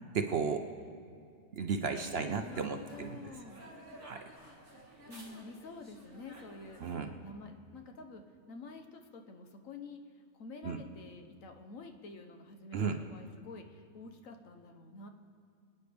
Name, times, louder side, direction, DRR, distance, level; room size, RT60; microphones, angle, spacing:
voice 1, 0.1-0.7 1.5-3.3 4.0-4.2 6.8-7.2 10.6-10.8 12.7-13.0, right 5 dB, 55° right, 6 dB, 0.8 m, -34 dB
voice 2, 1.9-3.7 4.3-6.8 7.2-15.1, left 3 dB, 70° left, 5 dB, 1.3 m, -49 dB
sound 1, 1.9-7.0, right 1 dB, 40° right, 3.1 m, -54 dB
25.0 x 9.6 x 3.4 m, 2.3 s
omnidirectional pair, 1.5 m